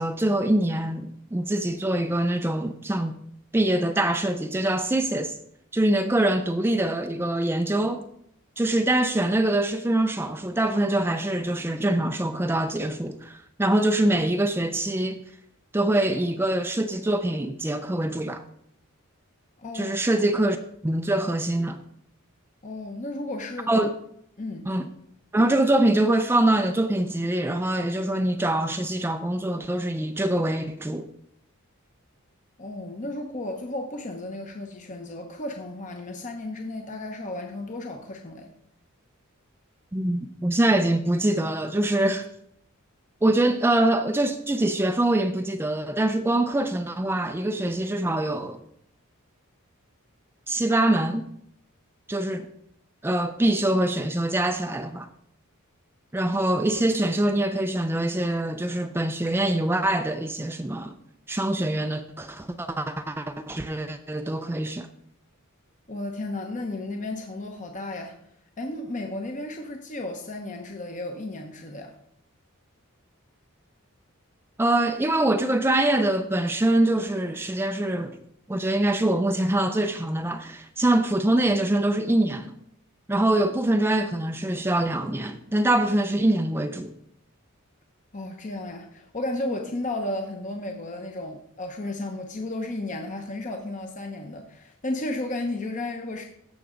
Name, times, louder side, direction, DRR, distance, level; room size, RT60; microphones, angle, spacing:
voice 1, 0.0-3.2 3.5-5.3 5.7-8.0 8.6-15.2 15.7-18.4 19.7-20.6 20.8-21.8 23.7-23.9 24.7-24.9 25.3-31.1 39.9-42.3 43.2-48.6 50.5-51.3 52.1-52.5 53.0-55.1 56.1-60.9 61.3-64.9 74.6-78.2 78.5-82.5 83.1-86.9, right 1 dB, 10° right, 0.4 m, -24 dB
voice 2, 19.6-19.9 22.6-23.7 24.4-24.7 32.6-38.5 65.9-68.2 68.6-71.9 88.1-96.2, left 2 dB, 35° left, 0.9 m, -33 dB
16.0 x 6.1 x 3.8 m
head